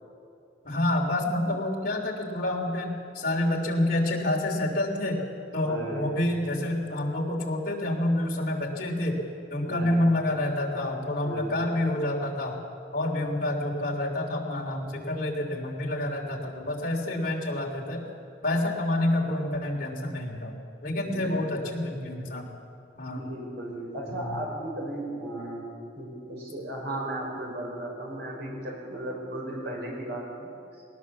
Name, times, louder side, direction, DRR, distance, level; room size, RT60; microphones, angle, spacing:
voice 1, 0.6-5.2 5.5-9.2 9.5-12.6 12.9-18.1 18.4-20.5 20.8-22.5 23.0-23.2 24.1-24.4, left 1 dB, 50° left, 0 dB, 3.3 m, -28 dB
voice 2, 5.6-6.4 9.7-10.1 11.2-11.8 21.0-21.4 23.1-25.7 26.0-30.5, right 1 dB, 60° right, -1 dB, 5.6 m, -35 dB
19.0 x 19.0 x 7.3 m, 2.6 s
head